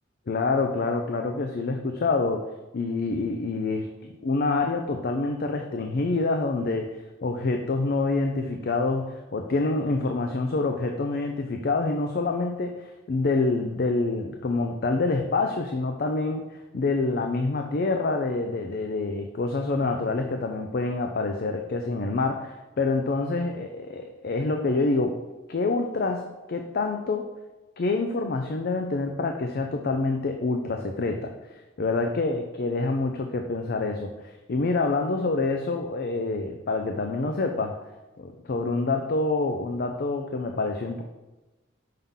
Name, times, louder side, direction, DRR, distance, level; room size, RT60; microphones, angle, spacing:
voice 1, 0.3-2.5 2.7-25.2 25.5-27.3 27.8-37.8 38.2-41.0, left 3 dB, 50° left, 5 dB, 0.5 m, -27 dB
5.7 x 5.5 x 3.6 m, 1.1 s
head